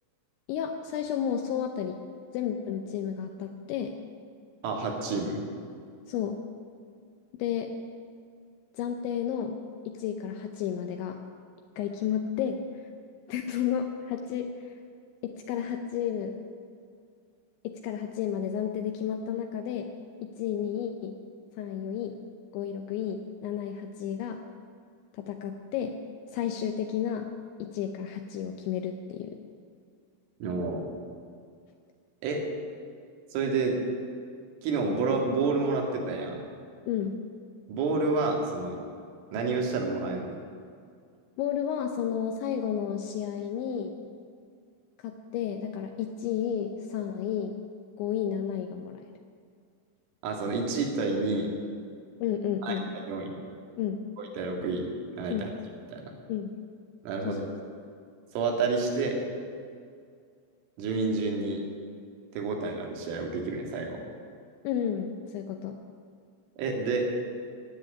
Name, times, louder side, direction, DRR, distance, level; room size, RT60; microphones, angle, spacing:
voice 1, 0.5-2.0 2.3-4.0 6.1-6.4 7.4-7.7 8.7-9.6 9.9-11.2 11.8-12.9 13.3-14.7 15.2-16.3 17.6-19.9 20.2-21.2 21.6-22.2 22.5-24.4 25.1-26.0 26.3-27.3 27.6-29.4 36.8-37.2 41.4-44.1 45.0-47.6 48.0-49.1 52.2-52.9 53.8-54.0 55.3-55.5 56.3-56.5 57.3-57.4 64.6-65.8, left 9 dB, 80° left, 5 dB, 2.9 m, -32 dB
voice 2, 4.6-5.4 30.4-30.9 32.2-32.4 33.3-33.8 34.6-36.4 37.7-38.8 39.3-40.4 50.2-51.5 52.6-53.3 54.2-54.9 55.1-55.5 55.9-56.1 57.0-57.4 58.4-59.2 60.8-61.6 62.3-64.0 66.6-67.0, right 3 dB, 80° right, 1 dB, 4.6 m, -29 dB
17.0 x 8.0 x 9.9 m, 2.2 s
omnidirectional pair, 5.6 m